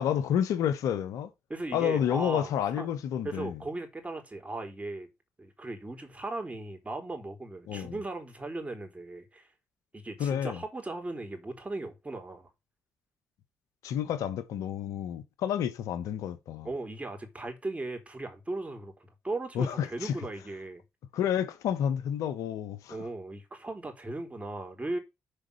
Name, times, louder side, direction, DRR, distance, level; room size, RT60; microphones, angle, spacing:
voice 1, 0.0-1.3 1.7-3.6 7.7-8.0 10.2-10.6 13.8-16.7 19.5-20.2 21.1-23.0, left 9 dB, 75° left, 1.0 m, -30 dB
voice 2, 1.5-2.9 3.2-5.1 5.4-9.5 9.9-12.5 16.6-20.8 22.9-25.0, right 2 dB, 25° right, 3.9 m, -37 dB
7.0 x 5.1 x 6.8 m
supercardioid pair, 50°, 6 cm